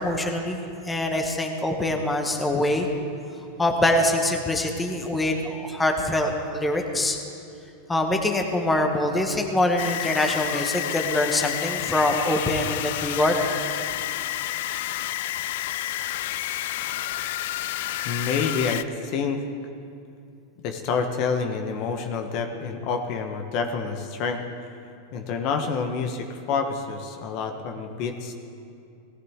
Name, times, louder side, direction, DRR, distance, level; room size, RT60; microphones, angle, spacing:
voice 1, 0.0-2.9 3.6-7.2 7.9-13.4, left 1 dB, 10° left, 3 dB, 1.3 m, -24 dB
sound 1, 9.8-18.8, left 14 dB, 70° left, 0.4 m, -30 dB
voice 2, 18.0-19.4 20.6-24.7 25.1-28.3, left 5 dB, 50° left, 5 dB, 1.1 m, -28 dB
18.0 x 14.5 x 3.7 m, 2.6 s
supercardioid pair, 135°, 0 cm